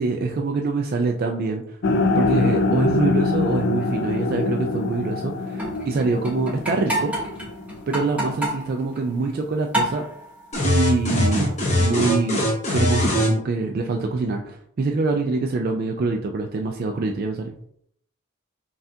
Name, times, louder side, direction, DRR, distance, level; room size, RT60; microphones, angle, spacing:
voice 1, 0.0-1.8 2.1-7.1 7.9-10.0 10.6-11.5 11.8-17.5, right 3 dB, 45° right, 3 dB, 0.3 m, -25 dB
sound 1, 1.8-8.0, left 3 dB, 55° left, 0.4 m, -24 dB
sound 2, 5.5-9.4 9.7-10.8 12.0-12.3, right 1 dB, 5° right, 0.8 m, -30 dB
sound 3, 10.5-13.3, left 1 dB, 35° left, 1.0 m, -21 dB
5.5 x 2.4 x 2.7 m, 0.67 s
head